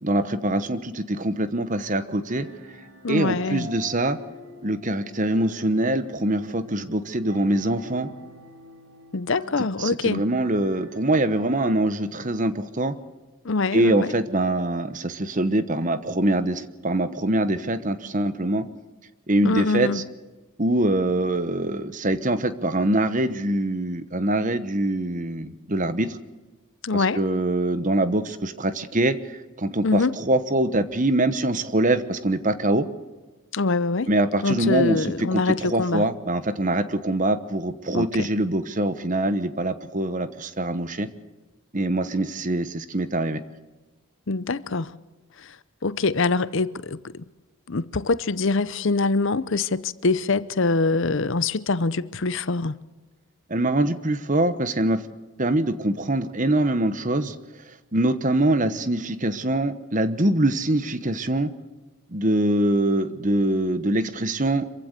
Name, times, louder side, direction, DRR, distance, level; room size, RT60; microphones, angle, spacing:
voice 1, 0.0-2.5 3.1-4.2 4.6-8.1 9.8-12.9 13.7-18.6 19.3-20.0 20.6-26.2 26.9-32.9 34.1-35.1 35.3-41.1 41.7-43.4 53.5-55.0 55.4-57.3 57.9-61.5 62.1-64.7, right 1 dB, 35° right, 1.1 m, -24 dB
sound 1, 1.6-11.7, left 1 dB, 85° right, 5.1 m, -45 dB
voice 2, 3.0-3.7 9.1-10.3 13.4-14.1 19.4-20.0 26.8-27.2 29.8-30.1 33.5-34.1 34.4-36.1 37.9-38.3 44.3-44.9 45.4-45.6 45.8-47.2 47.7-52.8, left 3 dB, 55° left, 0.7 m, -24 dB
26.0 x 15.5 x 6.7 m
head